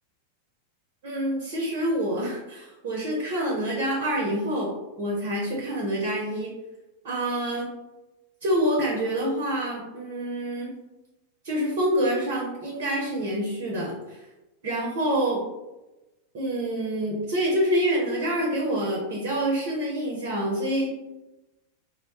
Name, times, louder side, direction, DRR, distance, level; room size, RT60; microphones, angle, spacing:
voice 1, 1.0-6.5 7.0-7.7 8.4-10.7 11.4-14.2 14.6-15.4 16.3-20.9, right 1 dB, 50° right, -2 dB, 0.6 m, -27 dB
2.5 x 2.1 x 2.8 m, 1.0 s
figure-of-eight pair, 90°, 0 cm